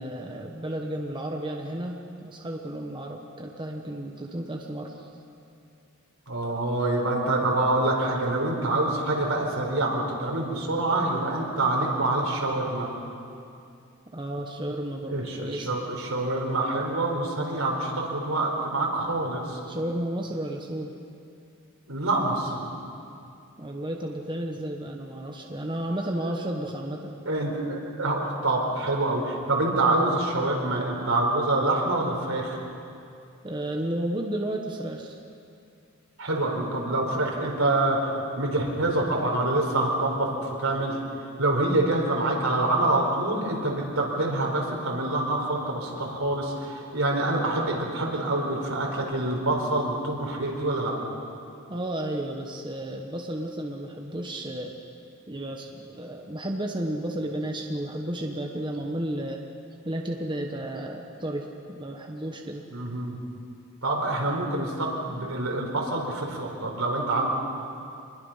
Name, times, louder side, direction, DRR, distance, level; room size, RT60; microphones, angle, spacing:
voice 1, 0.0-5.1 14.1-15.7 19.7-20.9 23.6-27.2 33.4-35.2 51.7-54.8 55.3-59.4 59.8-62.7, right 1 dB, 20° right, 1 dB, 1.2 m, -32 dB
voice 2, 6.3-12.9 15.1-19.6 21.9-22.7 26.2-26.3 27.2-32.6 36.2-41.0 41.4-50.9 62.7-63.1 63.8-67.3, right 2 dB, 75° right, 0 dB, 4.4 m, -26 dB
26.5 x 21.0 x 5.7 m, 2.5 s
head